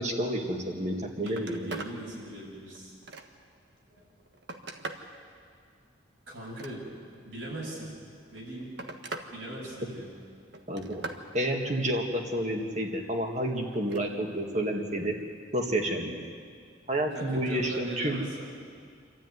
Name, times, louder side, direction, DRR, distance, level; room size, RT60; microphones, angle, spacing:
voice 1, 0.0-1.8 10.7-11.0 11.3-15.2 15.5-16.2 16.9-18.2, right 1 dB, 35° right, 2 dB, 2.1 m, -30 dB
Telephone, 0.7-0.9 1.2-2.0 2.5-3.5 4.1-5.1 6.4-7.2 8.2-9.3 9.7-10.1 10.5-11.3 13.7-14.1 15.5-15.6, right 2 dB, 60° right, 1.4 m, -42 dB
voice 2, 1.2-2.9 3.9-4.0 6.3-6.8 7.2-7.9 8.3-8.7 9.3-10.1 17.1-18.5, right 1 dB, 80° right, -3 dB, 7.9 m, -40 dB
27.0 x 13.0 x 9.5 m, 2.1 s
head